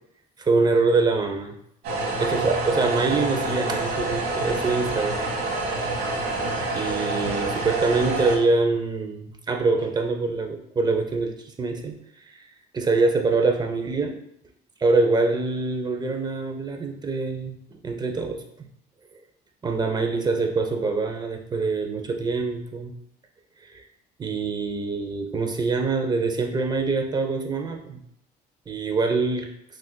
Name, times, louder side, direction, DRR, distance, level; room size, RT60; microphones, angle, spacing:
voice 1, 0.4-1.6 2.2-5.3 6.7-12.0 12.7-14.2 14.8-18.4 19.6-22.9 23.7-23.8 24.2-28.0 28.7-29.5, right 3 dB, 25° right, 4 dB, 0.6 m, -24 dB
sound 1, 1.8-8.4, right 2 dB, 75° right, 1.0 m, -27 dB
5.9 x 2.5 x 2.2 m, 0.73 s
cardioid pair, 110°, 17 cm